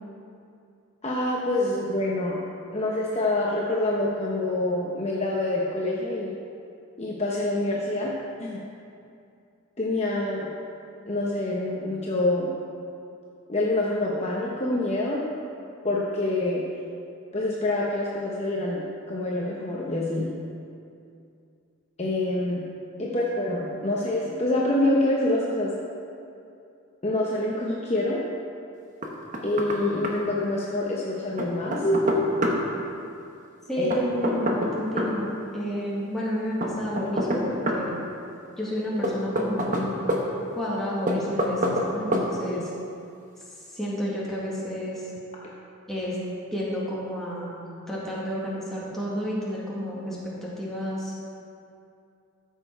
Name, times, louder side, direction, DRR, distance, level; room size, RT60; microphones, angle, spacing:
voice 1, 1.0-2.4 2.7-6.3 7.0-8.1 8.4-8.6 9.8-10.5 11.1-12.5 13.5-15.2 15.8-16.6 17.3-20.3 22.0-22.6 23.0-25.7 27.0-28.2 29.4-32.3 33.8-33.9 42.5-42.6, left 2 dB, 30° left, -4 dB, 0.8 m, -26 dB
Knock, 29.0-29.8 30.0-30.1 31.4-32.6 33.9-35.1 36.6-37.8 39.0-40.2 41.1-41.9 42.1-42.3, equal, 35° right, 1.0 m, -26 dB
voice 2, 33.7-35.3 35.5-37.9 38.6-40.0 40.5-42.6 43.7-45.1 45.9-46.2 46.5-47.6 47.9-51.1, equal, ahead, -7 dB, 1.9 m, -30 dB
14.0 x 6.5 x 4.5 m, 2.5 s
head